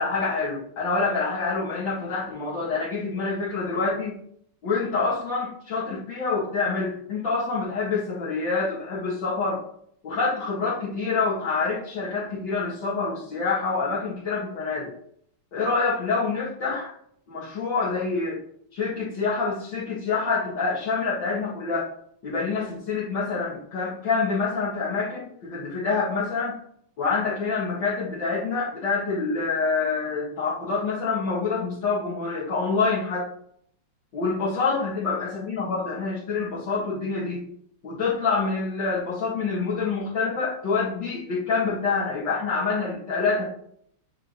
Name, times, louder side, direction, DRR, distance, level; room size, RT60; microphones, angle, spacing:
voice 1, 0.0-4.2 4.6-9.6 10.0-14.9 15.5-16.9 17.3-18.4 18.7-21.9 22.2-26.6 27.0-33.3 34.1-37.5 37.8-43.5, left 4 dB, 60° left, -10 dB, 2.6 m, -26 dB
8.8 x 4.1 x 3.1 m, 0.67 s
omnidirectional pair, 2.4 m